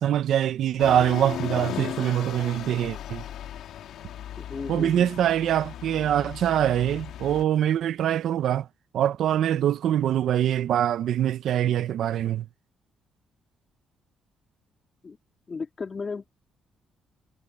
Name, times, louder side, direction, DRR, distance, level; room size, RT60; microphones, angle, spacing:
voice 1, 0.0-3.2 4.7-8.7 8.9-12.5, right 11 dB, 75° right, 1.0 m, -24 dB
sound 1, 0.8-7.4, left 11 dB, 80° left, 3.2 m, -37 dB
voice 2, 4.4-5.2 15.0-15.2 15.5-16.3, left 4 dB, 35° left, 3.3 m, -35 dB
cardioid pair, 90°, 0 cm